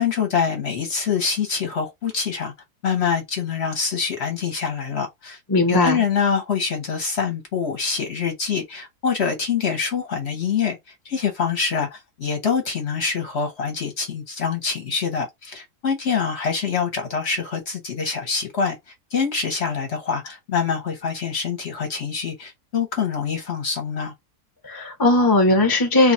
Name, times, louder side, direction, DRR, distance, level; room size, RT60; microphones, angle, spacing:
voice 1, 0.0-2.5 2.8-5.4 5.7-10.8 11.0-18.8 19.1-24.1, left 6 dB, 50° left, 0.9 m, -25 dB
voice 2, 5.5-6.0 24.6-26.1, left 2 dB, 20° left, 0.5 m, -18 dB
2.6 x 2.3 x 3.9 m
omnidirectional pair, 1.7 m